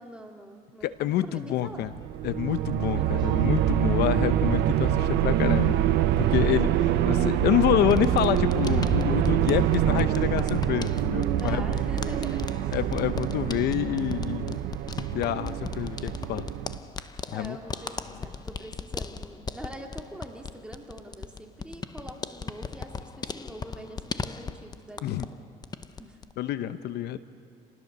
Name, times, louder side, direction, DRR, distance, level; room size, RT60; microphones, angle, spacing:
voice 1, 0.0-1.9 2.8-3.3 11.4-12.8 17.3-25.2 26.0-26.2, right 1 dB, 5° right, 1 dB, 2.4 m, -44 dB
voice 2, 0.8-1.9 2.2-5.8 6.2-11.8 12.7-14.6 15.0-16.5 17.3-17.6 25.0-25.3 26.4-27.2, left 12 dB, 75° left, 13 dB, 0.7 m, -27 dB
sound 1, 0.8-1.0 1.4-1.5 1.8-11.3 12.0-13.3 14.0-14.1 14.4-14.5 16.2-16.3 16.9-17.1 17.6-18.8, right 3 dB, 25° right, 2.0 m, -38 dB
sound 2, 1.8-16.8, right 11 dB, 85° right, 0.9 m, -25 dB
sound 3, 7.9-25.4 25.6-26.3, left 4 dB, 25° left, 0.7 m, -38 dB
28.5 x 19.5 x 6.7 m, 2.3 s
cardioid pair, 110°, 17 cm